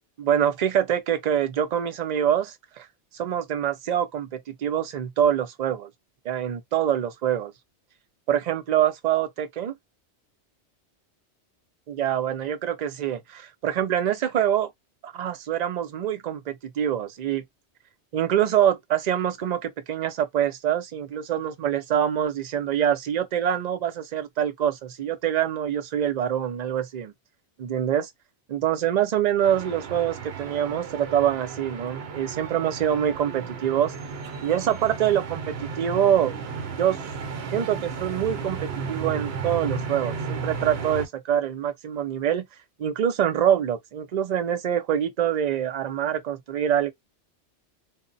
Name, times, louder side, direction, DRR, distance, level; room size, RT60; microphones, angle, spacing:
voice 1, 0.2-2.9 3.1-5.9 6.2-7.5 8.3-9.7 11.9-14.7 15.0-17.4 18.1-27.1 27.6-28.1 28.5-33.9 34.4-35.4 35.8-36.3 36.8-37.0 37.5-38.6 38.9-42.5 42.8-46.9, right 10 dB, 50° right, 0.5 m, -25 dB
sound 1, 29.4-41.1, right 5 dB, 65° right, 0.9 m, -34 dB
2.2 x 2.1 x 3.8 m
omnidirectional pair, 1.2 m